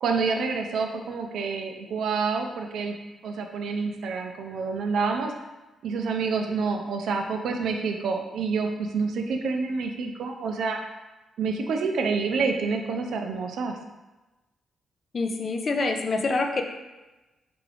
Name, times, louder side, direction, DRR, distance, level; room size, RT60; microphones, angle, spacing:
voice 1, 0.0-2.9 3.2-5.3 5.8-10.8 11.4-13.8, right 4 dB, 70° right, 4 dB, 0.4 m, -28 dB
voice 2, 15.1-16.6, left 3 dB, 35° left, 4 dB, 0.3 m, -26 dB
4.6 x 2.5 x 3.3 m, 1.1 s
wide cardioid pair, 165°, 0 cm